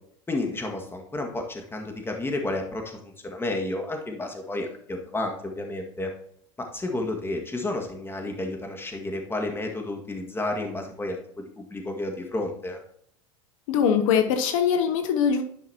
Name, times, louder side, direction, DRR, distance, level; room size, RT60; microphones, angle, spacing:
voice 1, 0.3-6.1 6.6-12.8, left 2 dB, 15° left, 2 dB, 1.8 m, -31 dB
voice 2, 13.7-15.4, left 7 dB, 75° left, 7 dB, 0.9 m, -22 dB
11.0 x 5.6 x 2.8 m, 0.65 s
hypercardioid pair, 90°, 17 cm